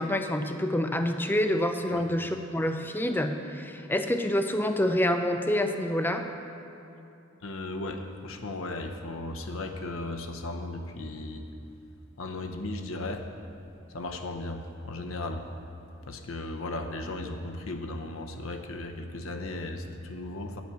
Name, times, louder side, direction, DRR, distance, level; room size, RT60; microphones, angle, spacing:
voice 1, 0.0-6.2, left 1 dB, 10° left, 6 dB, 0.5 m, -27 dB
voice 2, 7.4-11.5 12.2-13.3 13.9-15.5 16.0-20.6, left 2 dB, 75° left, 5 dB, 0.8 m, -36 dB
9.2 x 8.2 x 6.3 m, 2.7 s
head